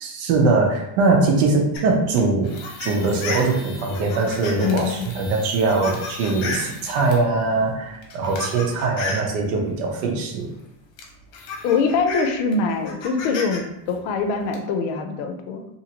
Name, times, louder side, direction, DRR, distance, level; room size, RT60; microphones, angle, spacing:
voice 1, 0.0-2.5 2.8-10.5, right 3 dB, 80° right, 1 dB, 0.9 m, -21 dB
sound 1, 1.7-7.2 7.9-9.3 10.5-10.6 11.0-13.6 13.9-14.5, left 3 dB, 70° left, 1.0 m, -33 dB
voice 2, 4.6-5.1 11.6-15.7, left 4 dB, 90° left, 6 dB, 0.6 m, -23 dB
2.8 x 2.6 x 2.8 m, 0.83 s
cardioid pair, 145°, 48 cm